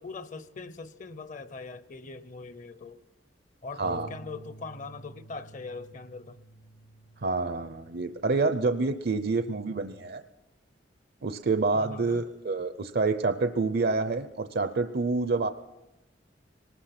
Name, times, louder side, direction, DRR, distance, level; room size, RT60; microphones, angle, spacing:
voice 1, 0.0-3.0 3.6-6.4 11.7-12.2, left 4 dB, 45° left, 15 dB, 0.8 m, -41 dB
sound 1, 3.8-10.1, right 2 dB, 80° left, 2.4 m, -52 dB
voice 2, 3.8-4.1 7.2-10.2 11.2-15.5, right 3 dB, 60° right, 10 dB, 0.6 m, -27 dB
22.5 x 19.5 x 5.9 m, 0.97 s
head